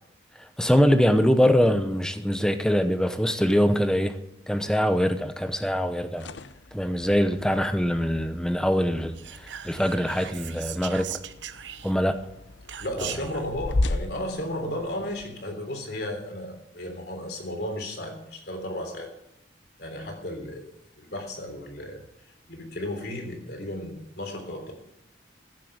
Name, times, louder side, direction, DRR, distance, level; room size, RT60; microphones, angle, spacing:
voice 1, 0.4-4.2 4.5-6.3 6.7-11.2 11.8-12.2 13.0-13.1, equal, 5° left, 0.9 m, -23 dB
sound 1, 6.1-15.2, left 2 dB, 80° left, 0.7 m, -36 dB
Whispering, 9.2-12.2 12.7-13.4, right 11 dB, 75° right, 0.7 m, -39 dB
voice 2, 12.8-19.1 19.8-22.0 22.5-24.7, left 1 dB, 60° left, 3.6 m, -34 dB
15.0 x 7.6 x 8.0 m
head